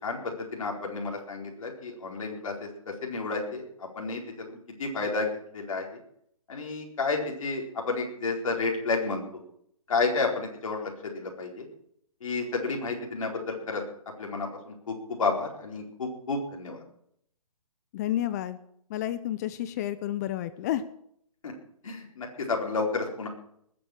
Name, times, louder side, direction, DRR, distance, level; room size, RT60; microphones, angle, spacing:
voice 1, 0.0-2.7 3.0-3.6 4.0-4.2 4.8-5.3 5.5-5.8 6.5-9.2 9.9-11.7 12.2-13.8 14.2-16.8 21.4-21.5 21.8-23.3, left 3 dB, 65° left, 1 dB, 4.5 m, -31 dB
voice 2, 17.9-18.6 18.9-20.8, left 12 dB, 30° left, 15 dB, 0.7 m, -30 dB
20.0 x 8.1 x 6.5 m, 0.70 s
hypercardioid pair, 145°, 19 cm